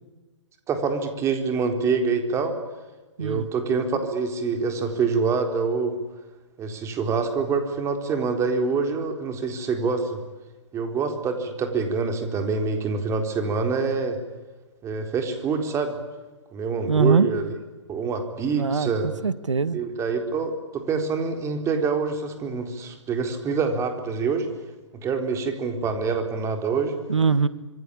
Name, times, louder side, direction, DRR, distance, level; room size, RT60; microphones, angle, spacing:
voice 1, 0.7-2.5 3.2-6.0 6.6-10.2 10.7-14.2 14.8-16.0 16.5-17.5 17.9-19.1 19.7-24.5 25.0-26.9, right 5 dB, 20° right, 6 dB, 4.1 m, -26 dB
voice 2, 16.9-17.3 18.5-19.8 27.1-27.5, right 5 dB, 80° right, 16 dB, 1.6 m, -22 dB
26.0 x 24.0 x 8.8 m, 1.2 s
figure-of-eight pair, 130°, 15 cm